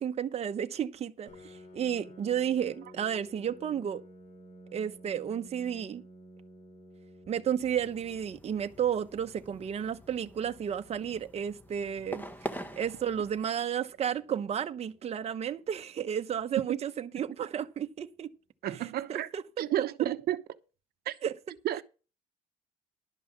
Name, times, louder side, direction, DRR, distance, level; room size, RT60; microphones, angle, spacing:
voice 1, 0.0-4.0 4.7-6.0 7.3-12.2 12.8-18.3 19.1-19.7 21.2-21.4, right 9 dB, 40° right, 0.9 m, -32 dB
Piano, 1.3-16.7, equal, 45° left, 3.2 m, -55 dB
sound 1, 7.6-13.4, equal, 10° left, 1.4 m, -45 dB
voice 2, 18.6-19.3 19.6-20.4 21.1-21.2 21.6-21.8, right 13 dB, 65° right, 0.8 m, -31 dB
11.5 x 5.4 x 7.2 m
cardioid pair, 110°, 17 cm